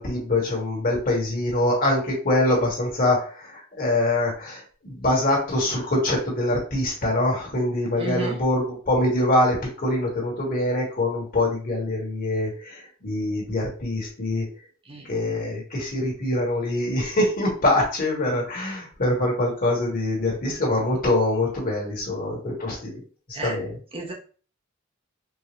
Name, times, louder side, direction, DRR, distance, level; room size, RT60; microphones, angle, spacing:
voice 1, 0.0-14.4 15.1-23.0 23.4-23.7, left 1 dB, 45° left, -2 dB, 1.5 m, -24 dB
voice 2, 8.0-8.4 14.9-15.1 23.3-23.6 23.9-24.1, right 3 dB, 25° right, 0 dB, 0.6 m, -32 dB
4.6 x 2.1 x 3.0 m, 0.39 s
head